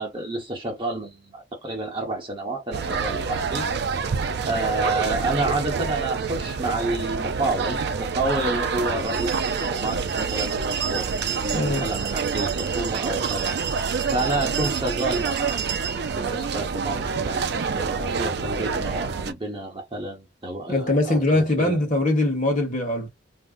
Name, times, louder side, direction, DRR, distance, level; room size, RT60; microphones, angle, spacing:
voice 1, 0.0-3.7 4.1-11.1 11.3-13.5 14.1-15.6 16.1-17.5 17.7-21.8, right 2 dB, 25° right, 1.0 m, -29 dB
sound 1, 2.7-19.3, right 5 dB, 60° right, 0.4 m, -27 dB
voice 2, 11.5-11.9 20.7-23.1, left 1 dB, 40° left, 1.3 m, -22 dB
2.7 x 2.1 x 3.6 m
head